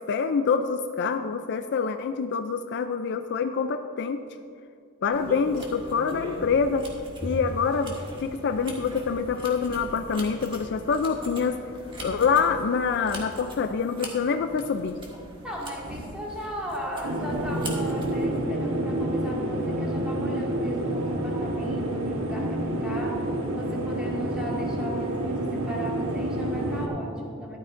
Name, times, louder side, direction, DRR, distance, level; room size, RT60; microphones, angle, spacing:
voice 1, 0.1-4.2 5.0-6.9 7.2-8.0 8.2-11.6 12.0-15.0, left 5 dB, 55° left, 8 dB, 0.4 m, -26 dB
sound 1, 5.1-18.2, right 1 dB, 25° right, 1.6 m, -40 dB
voice 2, 15.4-27.6, equal, 5° right, -5 dB, 2.0 m, -37 dB
sound 2, 17.0-26.9, right 1 dB, 75° right, 1.1 m, -28 dB
13.5 x 11.5 x 2.6 m, 2.3 s
head